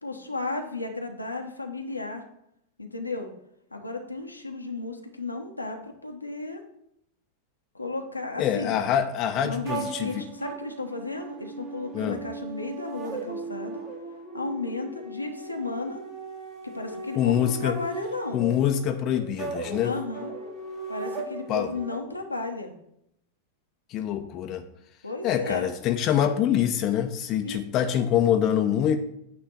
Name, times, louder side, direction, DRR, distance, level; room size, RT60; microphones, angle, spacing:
voice 1, 0.0-2.2 2.8-3.3 3.7-6.6 7.7-8.8 9.4-13.8 14.3-16.0 16.6-18.4 19.8-20.3 20.9-22.7 25.0-25.7 27.4-28.0, left 3 dB, 90° left, 3 dB, 1.1 m, -34 dB
voice 2, 8.4-10.3 11.9-12.2 17.2-17.7 18.3-19.9 21.5-21.7 23.9-24.6 25.2-29.0, left 10 dB, 40° left, 6 dB, 0.7 m, -25 dB
sound 1, 9.6-22.0, right 3 dB, 40° right, 2.0 m, -38 dB
9.0 x 3.5 x 6.8 m, 0.76 s
figure-of-eight pair, 90°, 0 cm